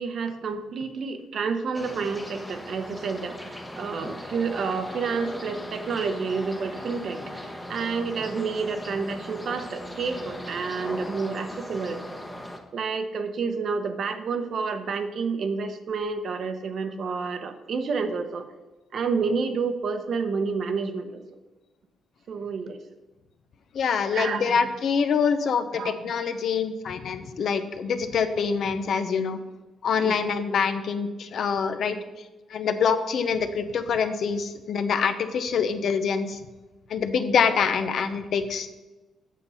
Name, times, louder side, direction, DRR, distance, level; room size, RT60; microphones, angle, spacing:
voice 1, 0.0-7.2 7.7-12.0 12.7-18.5 18.9-21.2 22.3-22.8 24.1-24.6 25.8-25.9 30.0-30.4, right 5 dB, 45° right, 8 dB, 0.9 m, -29 dB
sound 1, 1.7-12.6, left 1 dB, 5° left, 1.0 m, -38 dB
voice 2, 23.7-29.4 29.8-32.0 32.5-36.4 36.9-38.7, left 6 dB, 50° left, 10 dB, 0.7 m, -25 dB
8.4 x 7.0 x 5.6 m, 1.1 s
cardioid pair, 160°, 0 cm